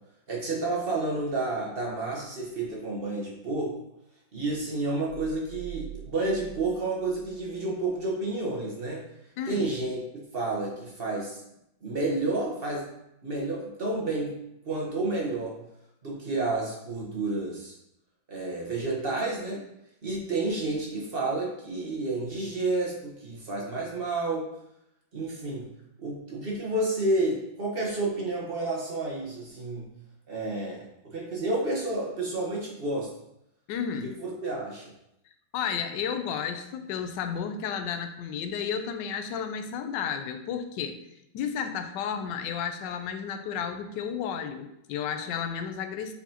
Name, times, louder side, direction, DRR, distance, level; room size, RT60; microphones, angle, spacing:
voice 1, 0.3-3.7 4.3-9.0 9.5-11.4 11.8-12.8 13.2-14.4 14.7-15.5 16.0-17.7 18.3-19.6 20.0-24.4 25.1-25.6 26.0-29.9 30.3-33.1 34.0-34.9, right 2 dB, 35° right, -2 dB, 1.2 m, -30 dB
sound 1, 5.0-7.6 7.9-8.1, right 12 dB, 65° right, 1.4 m, -44 dB
voice 2, 9.4-9.7 33.7-34.1 35.5-41.0 41.3-46.1, left 7 dB, 75° left, 7 dB, 1.2 m, -32 dB
8.0 x 4.1 x 2.9 m, 0.80 s
omnidirectional pair, 2.1 m